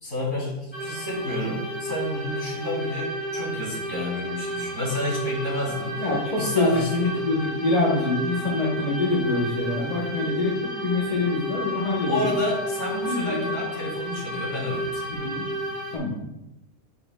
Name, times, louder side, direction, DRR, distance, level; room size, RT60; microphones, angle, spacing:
voice 1, 0.0-6.1 6.4-7.3 12.0-15.4, left 1 dB, 60° left, -4 dB, 2.6 m, -30 dB
sound 1, 0.7-16.0, right 1 dB, 5° left, 1.9 m, -32 dB
voice 2, 6.0-12.3 13.0-13.5 15.2-15.4 15.9-16.2, left 2 dB, 30° left, -2 dB, 1.0 m, -25 dB
9.7 x 5.1 x 2.2 m, 0.90 s
omnidirectional pair, 1.5 m